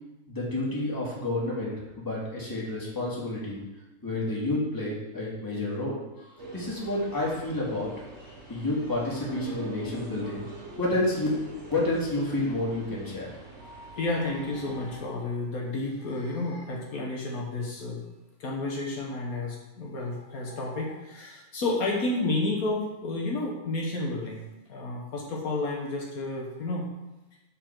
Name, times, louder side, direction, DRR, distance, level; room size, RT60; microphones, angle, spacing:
voice 1, 0.3-3.6 4.0-7.9 8.5-10.5 10.8-11.3 11.7-13.3, left 2 dB, 15° left, -6 dB, 1.9 m, -30 dB
sound 1, 6.4-15.0, right 2 dB, 45° right, 2.3 m, -44 dB
voice 2, 14.0-18.0 18.4-24.4 24.7-26.8, left 2 dB, 70° left, -2 dB, 1.5 m, -31 dB
7.0 x 5.3 x 4.5 m, 1.0 s
omnidirectional pair, 1.6 m